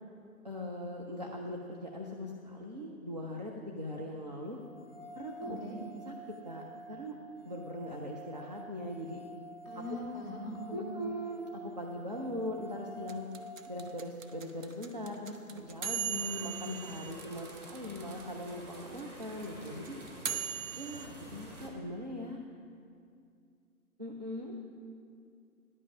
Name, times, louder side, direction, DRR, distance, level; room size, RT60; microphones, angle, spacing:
voice 1, 0.4-4.6 5.2-5.6 6.1-6.2 6.4-7.2 7.4-9.2 9.8-10.0 10.7-13.3 13.7-20.0 20.8-22.4 24.0-24.5, left 1 dB, 30° right, 0 dB, 0.5 m, -40 dB
sound 1, 4.6-14.7, right 2 dB, 40° left, 0.6 m, -49 dB
voice 2, 5.4-5.8 9.6-11.0, left 2 dB, 10° left, -3 dB, 2.0 m, -41 dB
sound 2, 13.1-18.2 18.5-18.6 18.7-21.1, right 7 dB, 60° right, 0.8 m, -38 dB
sound 3, 16.1-21.7, right 1 dB, 75° right, 2.4 m, -50 dB
10.5 x 5.8 x 7.0 m, 2.4 s
figure-of-eight pair, 140°, 45 cm